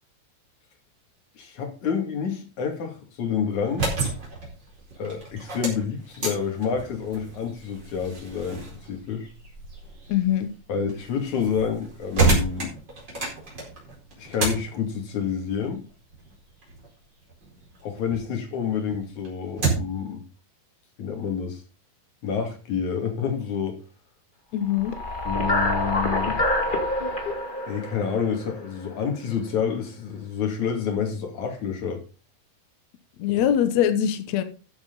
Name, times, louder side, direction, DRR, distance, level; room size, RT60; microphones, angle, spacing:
voice 1, 1.4-3.9 5.0-9.3 10.7-12.7 14.2-15.8 17.8-20.2 21.0-21.6 22.2-23.8 25.2-26.4 27.7-32.0 33.3-33.4, left 7 dB, 50° left, 4 dB, 3.4 m, -28 dB
sound 1, 3.6-18.3 18.7-20.1, right 3 dB, 25° right, 4.8 m, -31 dB
voice 2, 10.1-10.5 24.5-24.9 33.2-34.4, left 10 dB, 75° left, 9 dB, 1.6 m, -22 dB
sound 2, 24.7-29.0, left 1 dB, 30° left, 0.9 m, -26 dB
13.5 x 8.2 x 3.9 m, 0.34 s
omnidirectional pair, 4.6 m